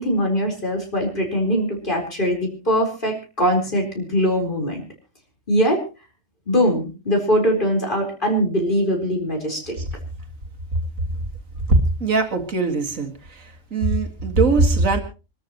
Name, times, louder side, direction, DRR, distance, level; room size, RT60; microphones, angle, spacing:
voice 1, 0.0-4.9 5.5-5.8 6.5-9.7, equal, 40° left, 1 dB, 4.5 m, -22 dB
voice 2, 12.0-13.1 13.7-15.0, right 3 dB, 80° right, 5 dB, 2.3 m, -20 dB
27.0 x 13.0 x 3.0 m, 0.32 s
omnidirectional pair, 1.4 m